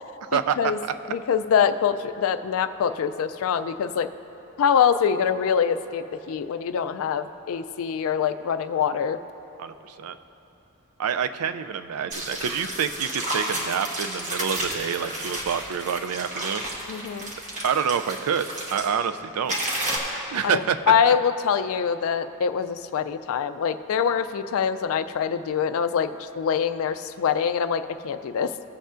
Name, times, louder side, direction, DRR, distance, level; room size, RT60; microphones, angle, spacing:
voice 1, 0.3-0.8 1.1-4.1 4.6-9.2 16.9-17.3 20.4-28.5, left 7 dB, 65° left, 11 dB, 0.3 m, -24 dB
voice 2, 9.6-10.2 11.0-16.6 17.6-19.6 20.3-20.8 21.1-21.2, right 7 dB, 75° right, 10 dB, 0.4 m, -27 dB
sound 1, 12.1-18.9 19.5-20.0, right 1 dB, 35° right, 1.2 m, -31 dB
15.5 x 7.8 x 2.5 m, 3.0 s
head